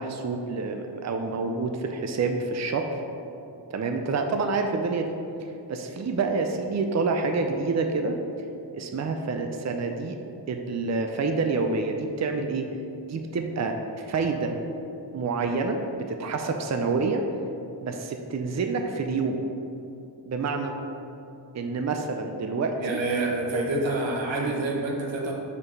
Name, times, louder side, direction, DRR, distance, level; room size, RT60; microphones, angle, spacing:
voice 1, 0.0-2.9 3.7-8.2 8.7-10.2 10.5-12.7 13.1-14.6 15.1-17.3 17.8-19.4 20.2-20.7 21.5-23.0 24.4-24.5, right 4 dB, 40° right, 4 dB, 0.5 m, -28 dB
voice 2, 22.8-25.3, right 2 dB, 90° right, 0 dB, 1.0 m, -27 dB
5.0 x 4.2 x 5.5 m, 2.7 s
cardioid pair, 55°, 44 cm